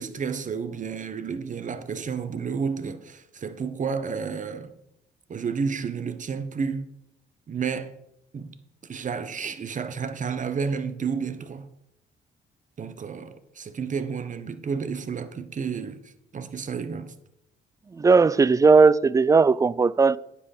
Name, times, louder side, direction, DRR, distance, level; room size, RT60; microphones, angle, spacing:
voice 1, 0.0-4.7 5.3-6.9 7.5-7.9 8.3-8.5 8.8-11.7 12.8-16.0 16.3-17.1, right 6 dB, 40° right, 1.0 m, -31 dB
voice 2, 17.9-20.2, right 4 dB, 15° right, 0.3 m, -17 dB
9.6 x 5.8 x 6.6 m
cardioid pair, 90°, 20 cm